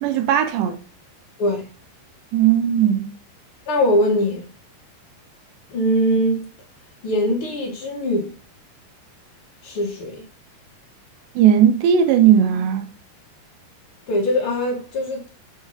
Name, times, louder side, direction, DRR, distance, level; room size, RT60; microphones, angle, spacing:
voice 1, 0.0-0.8 2.3-3.1 11.4-12.9, right 9 dB, 85° right, 3.2 m, -17 dB
voice 2, 3.7-4.5 5.7-6.5 7.0-8.3 9.6-10.2 14.1-15.3, equal, 40° left, 2.1 m, -21 dB
7.2 x 7.1 x 4.3 m
omnidirectional pair, 4.9 m